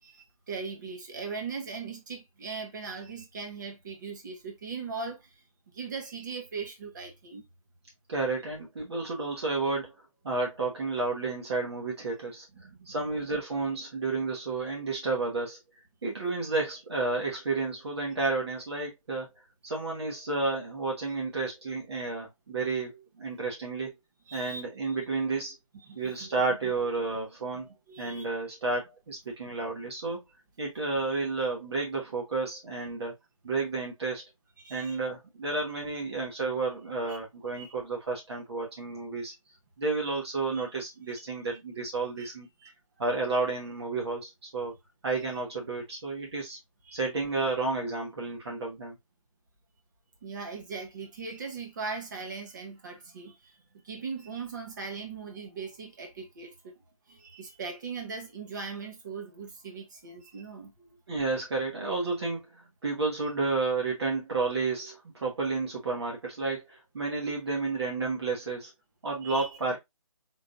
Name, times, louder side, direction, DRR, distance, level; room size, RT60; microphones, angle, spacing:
voice 1, 0.0-5.3 5.7-7.4 12.5-12.9 24.3-24.6 25.8-26.3 26.6-26.7 27.7-28.2 34.6-35.0 37.1-37.2 37.6-37.7 40.5-40.6 41.5-41.6 42.2-42.3 42.6-42.7 46.8-47.0 50.2-53.6 53.8-56.7 57.1-60.7 69.2-69.5, right 4 dB, 35° right, 1.0 m, -39 dB
voice 2, 8.1-9.9 10.2-12.4 12.8-15.6 16.0-19.3 19.6-23.9 24.3-25.5 25.9-30.2 30.6-33.1 33.4-34.2 34.7-39.3 39.8-42.5 43.0-44.7 45.0-46.6 46.9-48.9 61.1-68.7 69.0-69.8, right 3 dB, 50° right, 1.4 m, -31 dB
3.8 x 3.3 x 2.5 m
figure-of-eight pair, 160°, 18 cm